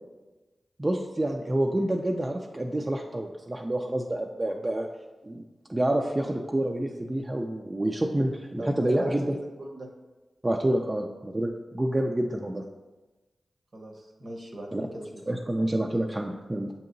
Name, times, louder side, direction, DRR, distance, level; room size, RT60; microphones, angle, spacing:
voice 1, 0.8-4.9 5.2-5.4 5.7-9.4 10.4-12.7 14.7-14.9 15.3-16.7, right 1 dB, 30° right, 2 dB, 0.4 m, -28 dB
voice 2, 8.6-9.9 13.7-15.2, right 1 dB, 60° right, 1 dB, 0.8 m, -40 dB
6.9 x 2.8 x 2.6 m, 1.2 s
cardioid pair, 40°, 0 cm